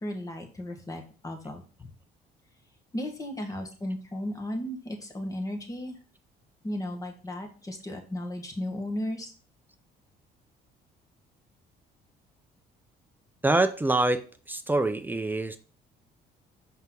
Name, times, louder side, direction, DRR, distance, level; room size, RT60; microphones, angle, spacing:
voice 1, 0.0-1.9 2.9-6.0 6.6-9.3, left 1 dB, 20° left, 3 dB, 1.6 m, -35 dB
voice 2, 13.4-14.2 14.5-15.6, right 2 dB, 10° right, 9 dB, 0.6 m, -25 dB
5.8 x 5.4 x 3.9 m, 0.38 s
cardioid pair, 110°, 17 cm